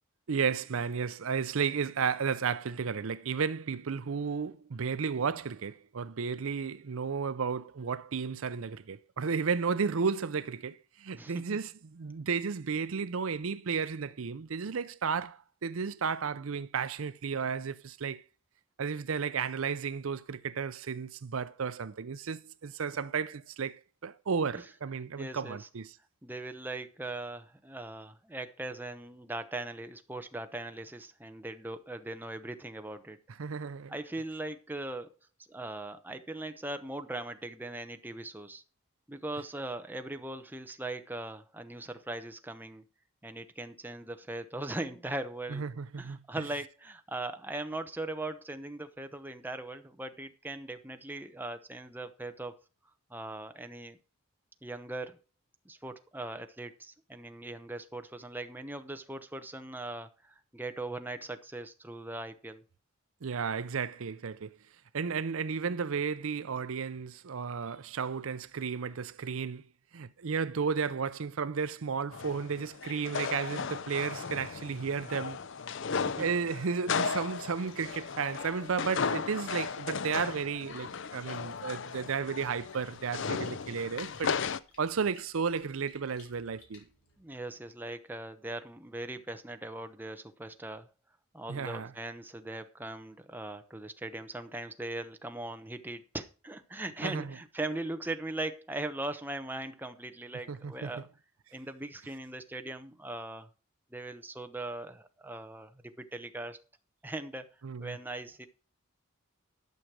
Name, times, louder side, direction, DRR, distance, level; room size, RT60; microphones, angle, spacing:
voice 1, 0.3-18.2 18.8-26.0 33.4-33.9 45.5-46.4 63.2-64.5 64.9-69.6 69.9-75.4 76.2-84.3 84.8-86.8 91.5-91.9 97.0-97.3 100.5-100.9 107.6-108.0, right 6 dB, 65° right, 0.5 m, -33 dB
voice 2, 11.1-11.6 24.5-24.6 25.2-25.7 26.2-33.2 33.9-35.1 35.5-38.6 39.1-42.8 43.2-45.7 46.0-52.5 53.1-54.0 54.6-55.2 55.6-62.6 75.9-76.3 87.2-90.9 91.3-101.1 101.5-103.5 103.9-106.6 107.0-107.5 107.8-108.5, right 2 dB, 10° right, 0.9 m, -40 dB
sound 1, 72.1-84.6, left 5 dB, 60° left, 0.6 m, -36 dB
Splash splatter, 76.7-87.3, left 4 dB, 85° left, 4.4 m, -59 dB
12.0 x 6.4 x 6.1 m
head